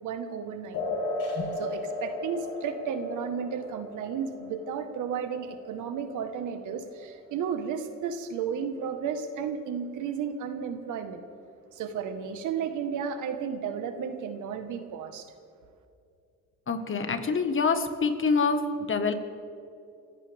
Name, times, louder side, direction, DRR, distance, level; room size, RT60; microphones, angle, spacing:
voice 1, 0.0-0.8 1.6-11.2 11.7-15.2, right 7 dB, 85° right, 8 dB, 1.4 m, -33 dB
sound 1, 0.7-7.8, left 2 dB, 85° left, 3.6 m, -36 dB
voice 2, 16.7-19.1, left 4 dB, 40° left, 8 dB, 1.5 m, -26 dB
26.5 x 15.5 x 3.5 m, 2.5 s
cardioid pair, 90°, 30 cm